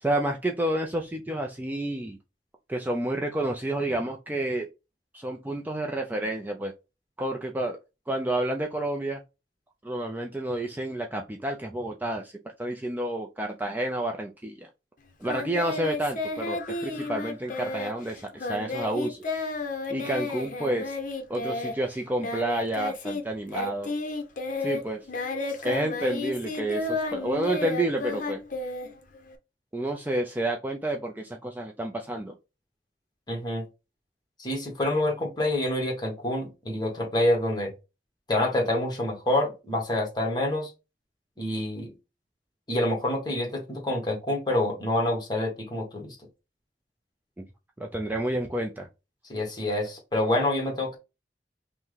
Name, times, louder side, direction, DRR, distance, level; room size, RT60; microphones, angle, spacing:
voice 1, 0.0-2.2 2.7-4.7 5.1-6.7 7.2-7.8 8.1-9.2 9.8-12.3 12.6-14.7 15.2-19.3 19.9-21.0 21.3-23.9 24.6-25.0 25.6-28.4 29.7-32.3 47.4-47.5 47.8-48.9, right 1 dB, 10° right, 2 dB, 0.4 m, -30 dB
Singing, 15.3-23.2 23.5-29.3, left 3 dB, 50° left, 0.8 m, -32 dB
voice 2, 33.3-33.6 34.4-37.7 38.3-40.7 41.4-41.9 42.7-46.2 49.3-51.0, left 1 dB, 25° left, 1 dB, 1.2 m, -27 dB
5.7 x 2.1 x 3.2 m, 0.27 s
head